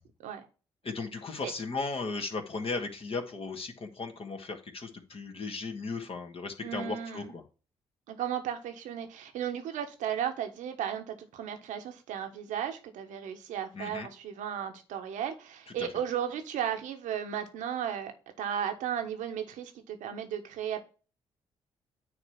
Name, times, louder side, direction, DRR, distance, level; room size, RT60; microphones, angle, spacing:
voice 1, 0.8-7.4 13.7-14.1, left 4 dB, 45° left, 2.0 m, -36 dB
voice 2, 6.6-7.3 8.1-18.1 18.4-20.8, right 9 dB, 75° right, 1.3 m, -35 dB
9.6 x 3.3 x 5.8 m
hypercardioid pair, 45°, 13 cm